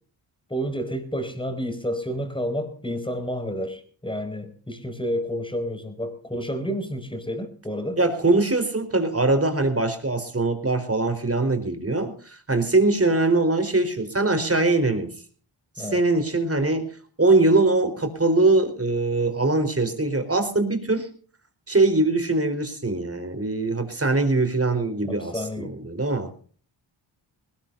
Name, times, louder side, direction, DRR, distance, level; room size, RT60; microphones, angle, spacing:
voice 1, 0.5-8.0 15.8-16.0 25.0-25.8, equal, 10° left, 8 dB, 5.1 m, -30 dB
voice 2, 8.0-15.1 15.8-16.9 17.2-21.1 21.7-26.5, right 2 dB, 30° right, 9 dB, 4.1 m, -22 dB
21.0 x 19.0 x 2.6 m, 0.43 s
cardioid pair, 55°, 47 cm